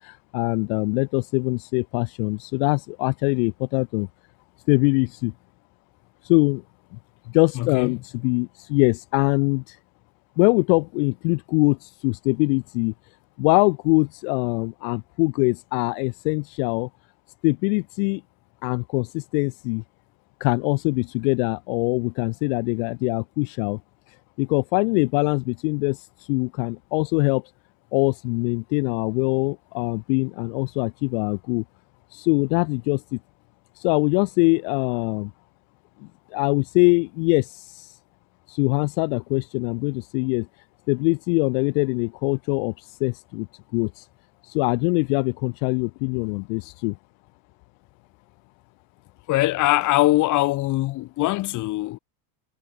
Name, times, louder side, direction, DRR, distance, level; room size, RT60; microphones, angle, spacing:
voice 1, 0.0-4.1 4.7-5.3 6.2-6.6 7.3-9.8 10.4-12.9 13.4-16.9 17.4-18.2 18.6-19.8 20.4-23.8 24.4-27.4 27.9-31.6 32.1-33.0 33.8-35.3 36.3-37.9 38.5-40.4 40.9-42.7 43.0-43.5 43.7-44.0 44.5-46.9, left 36 dB, 65° left, 0.8 m, -23 dB
voice 2, 7.5-7.9 49.3-52.0, left 18 dB, 40° left, 1.6 m, -22 dB
supercardioid pair, 145°, 44 cm